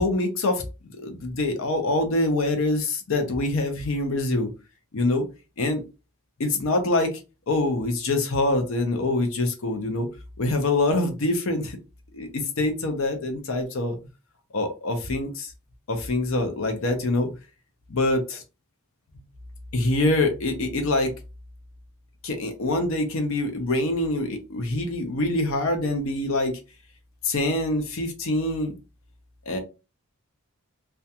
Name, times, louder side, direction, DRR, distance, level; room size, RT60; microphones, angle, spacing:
voice 1, 0.0-4.5 4.9-5.3 5.6-5.8 6.4-7.2 7.5-10.1 10.4-11.8 12.1-14.0 14.5-15.5 15.9-17.3 17.9-18.4 19.7-21.1 22.2-26.6 27.2-28.7 29.5-29.6, left 2 dB, 60° left, 5 dB, 0.5 m, -25 dB
2.4 x 2.2 x 2.7 m, 0.29 s
head